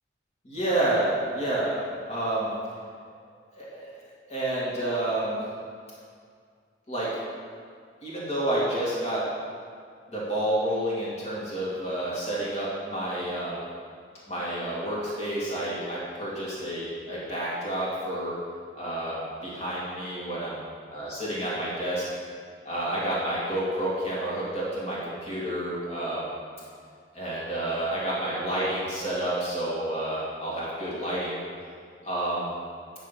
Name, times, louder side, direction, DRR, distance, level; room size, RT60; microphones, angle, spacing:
voice 1, 0.4-2.5 3.6-3.9 4.3-5.4 6.9-7.1 8.0-9.2 10.1-13.6 14.3-18.4 18.7-20.6 20.9-22.2 22.6-26.3 27.1-31.4 32.0-32.6, right 1 dB, 35° left, -7 dB, 1.9 m, -29 dB
10.0 x 3.4 x 5.6 m, 2.1 s
head